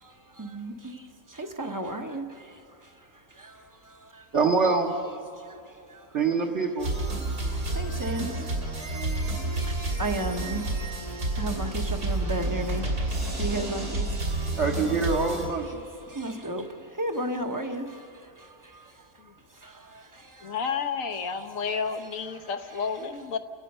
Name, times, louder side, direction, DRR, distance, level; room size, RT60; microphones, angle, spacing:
voice 1, 0.0-4.3 5.3-6.2 7.4-15.3 15.6-20.6 21.3-21.8 22.3-22.8, right 1 dB, 15° right, 5 dB, 1.0 m, -36 dB
voice 2, 4.3-4.9 6.1-6.9 14.6-15.8, right 4 dB, 50° right, -3 dB, 1.5 m, -24 dB
sound 1, 6.8-15.5, right 2 dB, 70° right, 3.4 m, -30 dB
voice 3, 20.4-23.4, left 6 dB, 60° left, 8 dB, 1.3 m, -31 dB
29.5 x 17.5 x 5.5 m, 2.6 s
omnidirectional pair, 1.6 m